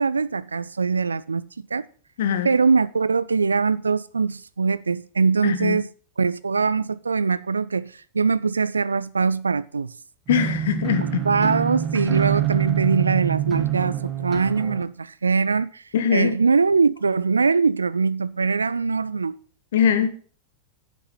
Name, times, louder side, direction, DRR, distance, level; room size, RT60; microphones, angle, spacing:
voice 1, 0.0-1.4 1.7-1.9 2.4-5.9 6.2-10.0 11.2-15.8 16.1-19.4, right 4 dB, 75° right, 0.5 m, -22 dB
voice 2, 2.2-2.5 5.4-5.8 10.3-11.2 15.9-16.3 19.7-20.1, left 8 dB, 60° left, 1.4 m, -21 dB
sound 1, 10.3-14.8, right 11 dB, 30° right, 2.0 m, -25 dB
9.4 x 9.2 x 5.6 m
figure-of-eight pair, 90°, 0 cm